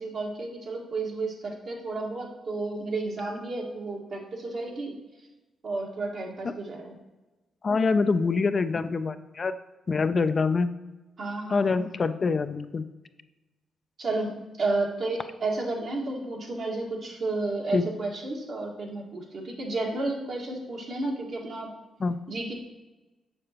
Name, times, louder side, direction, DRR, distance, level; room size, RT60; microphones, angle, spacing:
voice 1, 0.0-5.0 5.6-6.9 11.2-11.8 14.0-21.7 22.3-22.5, right 2 dB, 60° right, -1 dB, 1.7 m, -32 dB
voice 2, 7.6-9.5 9.9-10.7 11.5-12.8 17.7-17.8 22.0-22.2, left 4 dB, 45° left, 10 dB, 0.4 m, -25 dB
6.7 x 6.6 x 3.0 m, 1.1 s
supercardioid pair, 60°, 0 cm